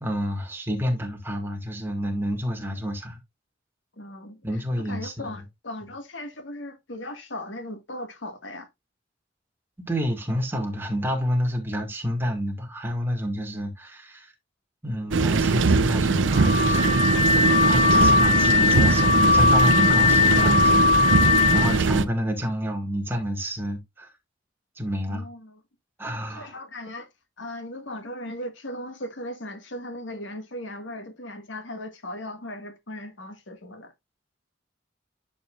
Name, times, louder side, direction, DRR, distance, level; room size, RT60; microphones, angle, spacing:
voice 1, 0.0-3.2 4.4-5.3 9.8-14.3 14.8-17.2 17.6-24.1 24.8-25.3 26.0-26.5, equal, 10° right, 1.9 m, -29 dB
voice 2, 4.0-4.4 4.9-8.7 25.1-25.6 26.4-27.1 27.4-33.9, left 1 dB, 75° left, 1.8 m, -37 dB
sound 1, 15.1-22.0, right 4 dB, 80° right, 0.6 m, -21 dB
Car / Alarm, 16.3-21.8, left 5 dB, 45° left, 0.8 m, -20 dB
11.0 x 5.5 x 2.4 m
head